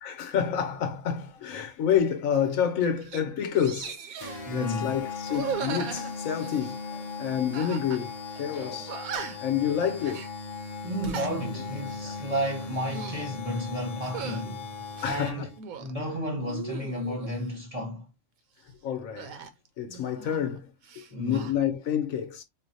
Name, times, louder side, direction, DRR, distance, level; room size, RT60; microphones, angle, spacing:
voice 1, 0.0-4.0 4.5-6.8 7.2-9.0 9.4-10.2 12.0-12.2 14.5-14.6 15.0-15.5 18.8-19.4 19.8-22.4, left 8 dB, 75° left, 1.1 m, -28 dB
sound 1, 2.3-2.5 2.8-3.2 3.6-4.4 5.2-6.8 7.5-8.0 8.3-8.4 8.9-9.5 10.0-10.3 10.9-11.3 11.8-12.1 12.7-13.3 14.0-14.4 14.9-15.9 16.4-17.4 19.2-20.6 20.8-21.5, right 7 dB, 85° right, 1.1 m, -38 dB
sound 2, 4.2-15.6, left 4 dB, 50° left, 0.4 m, -38 dB
voice 2, 4.4-5.0 6.9-7.1 8.5-9.0 10.8-14.7 15.0-18.1 21.1-21.5, equal, 30° right, 1.1 m, -33 dB
4.2 x 2.5 x 2.6 m
omnidirectional pair, 1.5 m